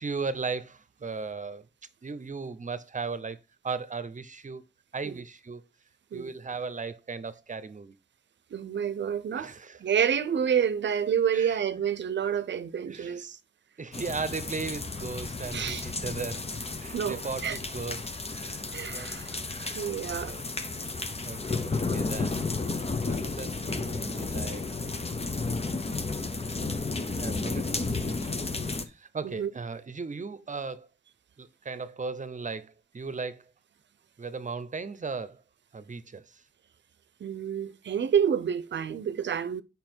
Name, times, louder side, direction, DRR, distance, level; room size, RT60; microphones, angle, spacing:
voice 1, 0.0-1.7 2.0-4.6 4.9-5.6 6.1-7.9 9.4-9.8 11.3-11.6 12.9-13.2 13.8-16.5 16.8-19.1 19.5-20.5 21.2-22.8 23.1-24.7 25.1-25.5 27.2-28.4 28.8-30.9 31.4-33.4 34.2-35.4 35.7-36.4, right 4 dB, 45° right, 0.8 m, -37 dB
voice 2, 8.5-9.5 9.8-13.4 15.5-15.8 16.9-17.6 18.7-19.4 19.7-20.3 29.2-29.5 37.2-39.6, right 8 dB, 85° right, 0.6 m, -28 dB
sound 1, 13.9-28.8, left 3 dB, 35° left, 1.0 m, -33 dB
7.6 x 5.6 x 4.5 m
cardioid pair, 65°, 18 cm